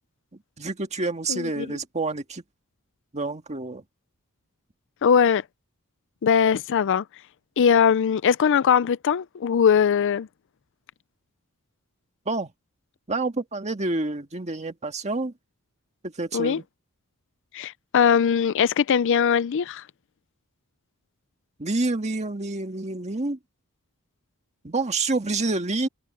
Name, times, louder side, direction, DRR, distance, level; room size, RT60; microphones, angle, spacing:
voice 1, 0.6-2.4 3.1-3.8 12.2-12.5 13.1-15.3 16.0-16.6 21.6-23.4 24.6-25.9, right 3 dB, 30° right, 1.7 m, -28 dB
voice 2, 1.3-1.8 5.0-5.5 6.2-7.2 7.6-10.3 16.3-16.6 17.5-19.9, left 7 dB, 60° left, 0.4 m, -21 dB
head